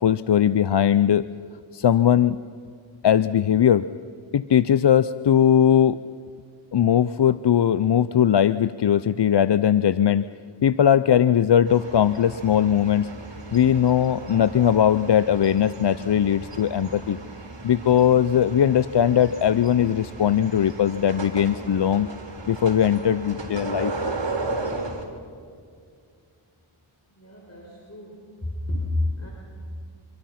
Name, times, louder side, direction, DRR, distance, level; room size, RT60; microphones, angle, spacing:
voice 1, 0.0-1.3 1.7-2.4 3.0-3.9 4.3-6.0 6.7-10.3 10.6-13.1 13.5-17.2 17.6-22.1 22.5-23.9, left 9 dB, 60° left, 15 dB, 0.6 m, -19 dB
sound 1, 11.7-25.0, right 2 dB, 60° right, 3.9 m, -35 dB
voice 2, 27.1-29.3, left 2 dB, 30° left, -2 dB, 5.5 m, -30 dB
25.5 x 25.0 x 5.9 m, 2.2 s
cardioid pair, 40°, 49 cm